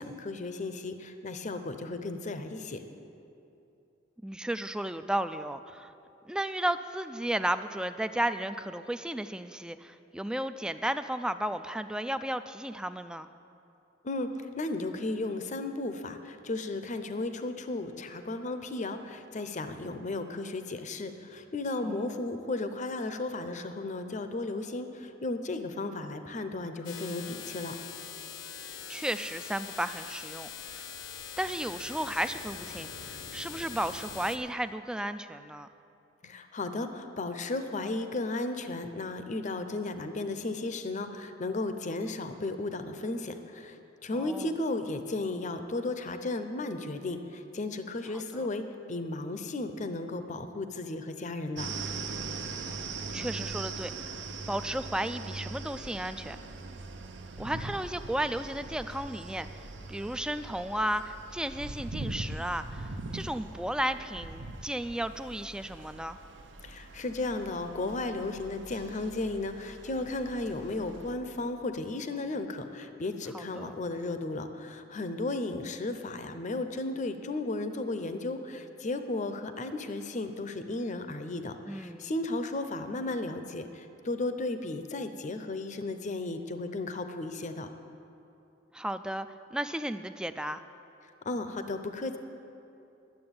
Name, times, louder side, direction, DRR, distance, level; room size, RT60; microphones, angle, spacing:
voice 1, 0.0-2.8 14.0-27.8 36.2-51.7 66.6-87.7 91.2-92.2, left 2 dB, 40° left, 8 dB, 0.6 m, -34 dB
voice 2, 4.2-5.9 6.2-13.3 21.8-22.1 28.9-30.9 31.4-35.7 44.1-44.5 48.1-48.5 53.1-53.9 54.5-56.4 57.4-59.5 59.9-66.2 73.3-73.7 81.7-82.1 88.7-90.6, right 1 dB, 5° right, 11 dB, 0.3 m, -34 dB
sound 1, 26.8-34.4, left 7 dB, 80° left, 0.9 m, -43 dB
sound 2, 51.6-71.1, right 3 dB, 70° right, 0.8 m, -41 dB
11.0 x 7.7 x 8.8 m, 2.8 s
head